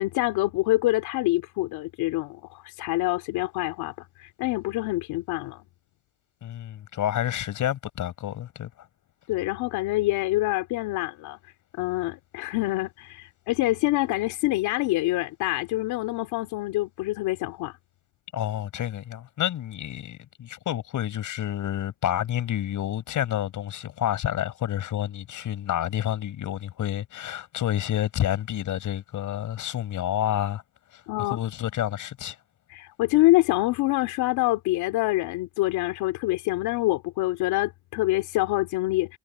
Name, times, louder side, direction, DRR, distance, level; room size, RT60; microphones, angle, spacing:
voice 1, 0.0-5.6 9.3-11.4 11.7-17.8 31.1-31.4 32.7-39.2, left 18 dB, 75° left, 2.9 m, -26 dB
voice 2, 6.4-8.7 18.3-30.6 30.9-32.4, left 11 dB, 50° left, 6.0 m, -29 dB
cardioid pair, 130°, 38 cm